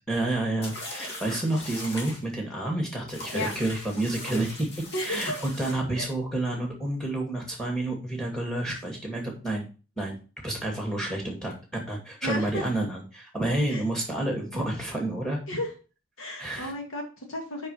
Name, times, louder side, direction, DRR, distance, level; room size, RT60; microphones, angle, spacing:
voice 1, 0.0-4.7 5.0-9.6 10.0-10.2 10.4-15.4 16.4-16.7, right 2 dB, 5° left, 1 dB, 2.3 m, -29 dB
sound 1, 0.6-2.2 3.1-5.7, left 1 dB, 50° left, 2.1 m, -39 dB
voice 2, 4.9-5.4 6.0-6.1 12.2-12.7 13.7-13.8 15.5-15.7 16.2-17.7, left 1 dB, 75° left, 2 dB, 1.9 m, -33 dB
5.6 x 5.3 x 6.6 m, 0.34 s
head